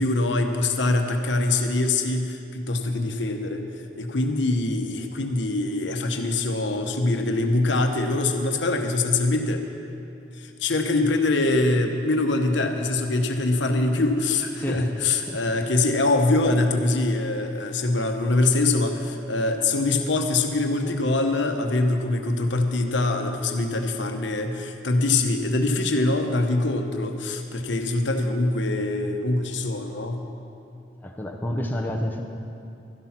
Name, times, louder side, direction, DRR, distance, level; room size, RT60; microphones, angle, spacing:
voice 1, 0.0-9.6 10.3-30.3, left 2 dB, 80° left, 5 dB, 1.0 m, -24 dB
voice 2, 14.6-14.9 15.2-15.4 31.0-32.2, equal, 10° left, 0 dB, 0.8 m, -29 dB
12.5 x 11.5 x 5.9 m, 2.6 s
head